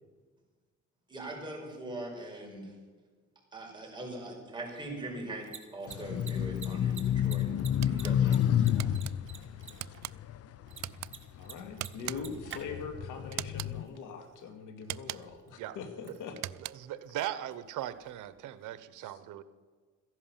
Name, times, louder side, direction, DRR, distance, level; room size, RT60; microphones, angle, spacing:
voice 1, 1.1-2.7 3.5-7.5 7.9-8.9, right 1 dB, 15° right, -1 dB, 5.6 m, -42 dB
Mechanisms, 5.2-18.8, right 7 dB, 40° right, 2.0 m, -53 dB
sound 1, 5.9-11.4 12.0-13.8, left 10 dB, 55° left, 0.5 m, -30 dB
sound 2, 7.8-8.2 8.8-9.1 9.8-10.1 10.8-11.1 11.8-12.4 13.3-13.7 14.8-15.4 16.3-16.9, right 15 dB, 65° right, 0.5 m, -40 dB
voice 2, 11.3-16.4 19.0-19.2, left 5 dB, 90° left, 6 dB, 2.2 m, -42 dB
voice 3, 16.8-19.4, right 12 dB, 85° right, 14 dB, 0.9 m, -39 dB
15.0 x 11.0 x 7.3 m, 1.4 s
cardioid pair, 90°, 30 cm